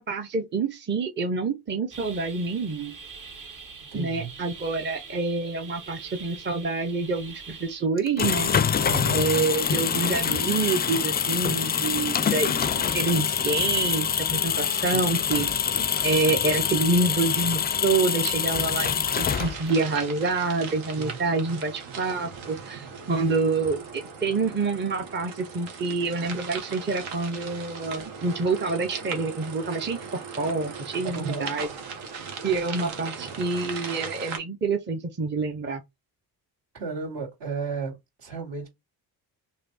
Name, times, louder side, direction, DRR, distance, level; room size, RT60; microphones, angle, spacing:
voice 1, 0.0-2.9 3.9-8.5 9.1-31.7 32.4-35.8, right 3 dB, 25° right, 0.7 m, -27 dB
sound 1, 1.9-7.9, right 5 dB, 40° right, 1.1 m, -44 dB
voice 2, 3.9-4.3 8.8-9.3 14.9-15.1 21.0-21.2 31.1-31.5 36.7-38.7, right 5 dB, 60° right, 2.4 m, -33 dB
sound 2, 8.0-19.8, left 7 dB, 25° left, 0.3 m, -25 dB
sound 3, 19.2-34.4, right 5 dB, 80° right, 1.2 m, -38 dB
3.3 x 2.7 x 4.0 m
supercardioid pair, 65°, 46 cm